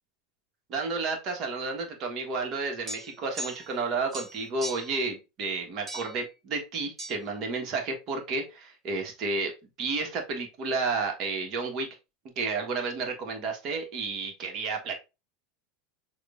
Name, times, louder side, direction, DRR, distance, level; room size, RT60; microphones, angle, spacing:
voice 1, 0.7-9.5 9.8-11.9 12.4-15.0, right 4 dB, 45° right, 3 dB, 1.3 m, -31 dB
sound 1, 2.9-3.8 4.1-5.0 5.9-6.2 7.0-7.1, right 1 dB, 25° right, 1.4 m, -39 dB
6.5 x 2.4 x 2.5 m, 0.27 s
figure-of-eight pair, 80°, 0 cm